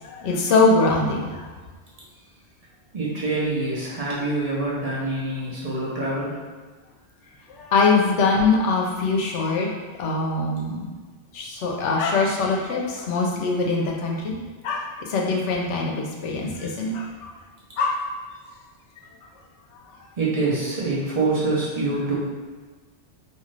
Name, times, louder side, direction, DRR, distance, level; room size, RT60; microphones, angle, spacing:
voice 1, 0.0-1.5 7.5-9.7 10.0-11.0 11.3-14.3 14.6-17.3 17.8-18.0, left 3 dB, 85° left, -1 dB, 0.9 m, -23 dB
voice 2, 2.9-6.4 20.2-22.2, right 2 dB, 40° right, -6 dB, 0.7 m, -25 dB
2.6 x 2.4 x 3.1 m, 1.4 s
omnidirectional pair, 1.2 m